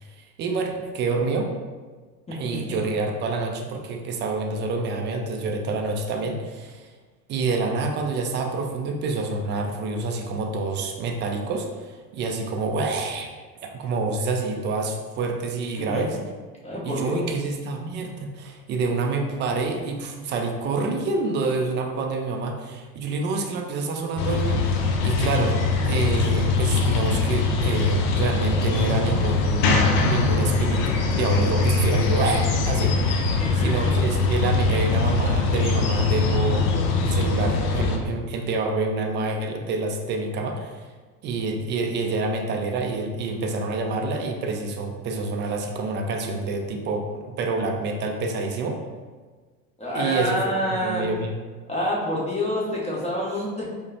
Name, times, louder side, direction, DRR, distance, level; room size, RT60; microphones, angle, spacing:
voice 1, 0.4-1.5 2.3-6.9 7.3-13.3 13.6-16.2 16.8-25.5 25.9-29.8 30.1-33.1 33.6-36.7 37.0-40.9 41.2-48.8 49.9-51.3, right 3 dB, 25° right, 3 dB, 0.3 m, -27 dB
voice 2, 2.3-2.8 15.8-16.1 16.6-17.3 33.4-33.9 49.8-51.1 51.7-53.6, equal, 15° left, -5 dB, 1.0 m, -27 dB
sound 1, 24.2-38.0, left 3 dB, 50° left, 0.6 m, -22 dB
4.9 x 2.2 x 2.8 m, 1.4 s
hypercardioid pair, 75°, 48 cm